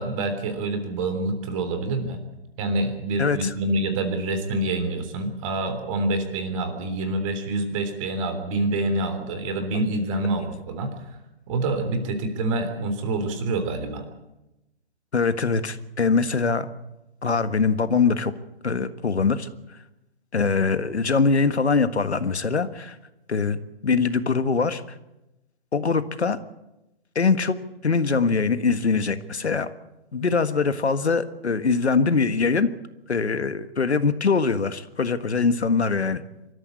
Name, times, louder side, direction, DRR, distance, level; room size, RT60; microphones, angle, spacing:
voice 1, 0.0-2.2 2.6-11.2 11.5-14.1, right 2 dB, 30° right, 8 dB, 3.4 m, -27 dB
voice 2, 3.2-3.5 15.1-16.7 17.2-18.3 18.6-19.5 20.3-23.0 23.3-23.6 23.8-24.8 25.7-26.4 27.1-27.6 27.8-29.7 30.1-32.7 33.1-36.2, left 4 dB, 85° left, 11 dB, 1.6 m, -22 dB
25.5 x 13.5 x 8.4 m, 0.95 s
hypercardioid pair, 145°, 32 cm